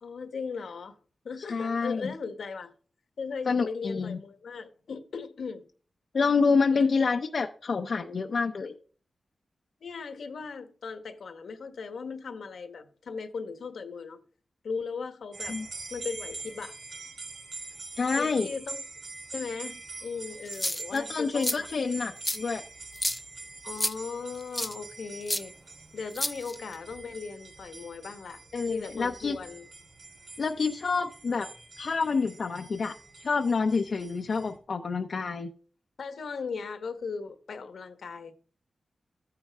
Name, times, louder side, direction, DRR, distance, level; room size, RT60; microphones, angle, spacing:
voice 1, 0.0-0.9 1.2-2.7 3.2-5.6 6.7-6.9 9.8-14.2 14.6-15.6 15.9-16.8 18.2-18.8 19.3-21.7 23.6-25.5 25.9-28.4 28.7-29.7 36.0-38.3, left 5 dB, 85° left, 1.3 m, -38 dB
voice 2, 1.5-2.1 3.5-4.2 6.1-8.7 15.5-15.7 17.9-18.5 20.9-22.6 28.5-29.4 30.4-31.5 31.8-32.9 33.2-35.5, left 4 dB, 65° left, 0.7 m, -27 dB
sound 1, 15.3-34.6, right 3 dB, 80° right, 3.4 m, -44 dB
sound 2, 20.5-21.0 21.4-21.6 22.2-22.4 22.9-23.2 23.8-23.9 24.6-24.7 25.3-25.4 26.1-26.7, left 1 dB, 10° left, 0.5 m, -30 dB
13.5 x 9.7 x 3.6 m
cardioid pair, 75°, 0 cm